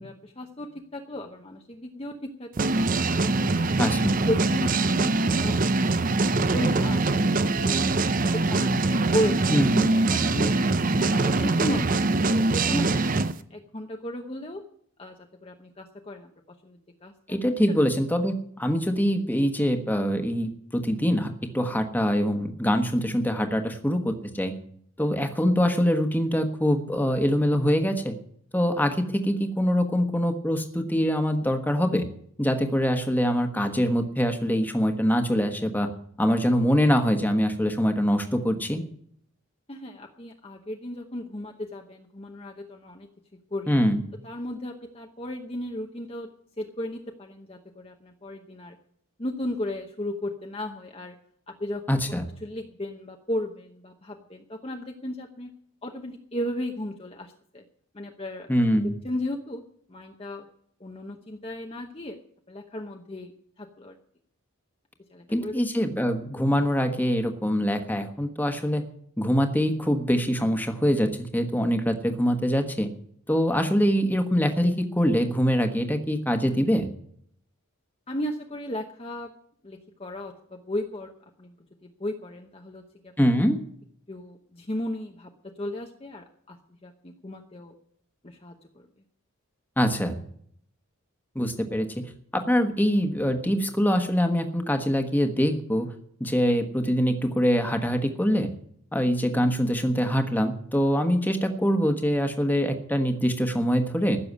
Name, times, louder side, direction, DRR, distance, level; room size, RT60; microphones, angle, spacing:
voice 1, 0.0-2.7 3.2-4.0 4.3-5.6 6.2-7.8 8.3-9.5 9.9-10.7 11.1-13.2 13.5-14.6 15.0-16.3 16.6-17.4 17.7-17.9 39.7-43.1 43.5-43.7 44.2-46.3 46.6-48.8 49.2-51.1 51.5-55.5 55.8-57.6 57.9-58.5 58.8-59.6 59.9-60.5 60.8-62.2 62.5-63.3 63.6-64.0 65.1-65.5 78.1-79.3 79.6-81.1 81.4-81.5 81.8-83.1 84.1-85.3 85.6-86.6 86.8-87.7 88.2-88.6, left 1 dB, 25° left, 2 dB, 0.9 m, -35 dB
sound 1, 2.6-13.3, right 3 dB, 35° right, 0.6 m, -23 dB
voice 2, 3.8-4.2 9.5-9.9 17.3-24.5 25.0-28.1 28.5-32.0 32.4-35.9 36.2-38.8 43.7-44.0 51.9-52.2 58.5-58.9 65.3-68.8 69.2-72.9 73.3-76.9 83.2-83.6 89.8-90.2 91.3-92.1 92.3-95.9 96.2-98.5 98.9-104.2, equal, 10° left, 5 dB, 1.3 m, -24 dB
15.5 x 6.8 x 9.4 m, 0.66 s
head